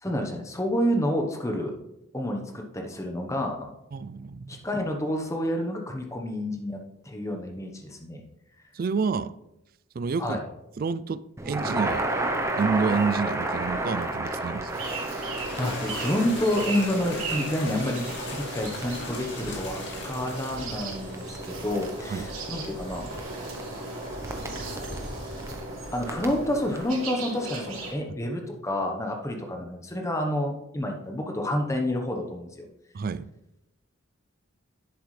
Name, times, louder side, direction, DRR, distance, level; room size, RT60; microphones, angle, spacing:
voice 1, 0.0-1.7 2.1-3.7 4.5-8.2 10.2-10.5 15.6-23.1 25.9-32.7, left 1 dB, 15° left, 1.0 m, -29 dB
voice 2, 3.9-4.6 8.7-9.3 10.0-10.4 10.8-12.0 12.6-14.7 22.1-22.3 32.9-33.3, right 5 dB, 45° right, 0.3 m, -29 dB
Crackle, 11.4-26.8, right 2 dB, 15° right, 0.8 m, -34 dB
sound 1, 14.7-27.9, right 2 dB, 80° right, 3.1 m, -36 dB
sound 2, 15.3-25.5, left 3 dB, 55° left, 2.4 m, -42 dB
10.5 x 8.0 x 3.3 m
head